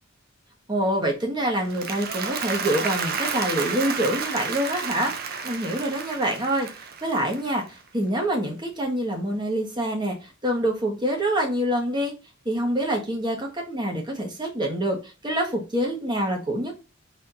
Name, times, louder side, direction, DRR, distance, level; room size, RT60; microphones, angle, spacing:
voice 1, 0.7-5.1 5.4-6.7 7.0-12.1 12.4-16.7, right 1 dB, 20° right, 1.3 m, -26 dB
Applause, 1.5-7.9, right 5 dB, 45° right, 0.7 m, -31 dB
4.3 x 3.6 x 2.6 m
head